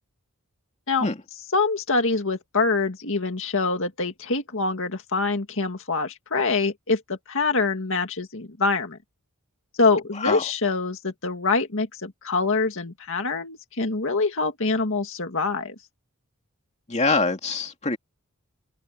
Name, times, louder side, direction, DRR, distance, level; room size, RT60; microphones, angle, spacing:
voice 1, 1.5-7.0 7.3-9.0 9.8-15.7, left 3 dB, 60° left, 2.1 m, -25 dB
voice 2, 10.2-10.5 16.9-18.0, left 3 dB, 30° left, 2.5 m, -24 dB
open air
head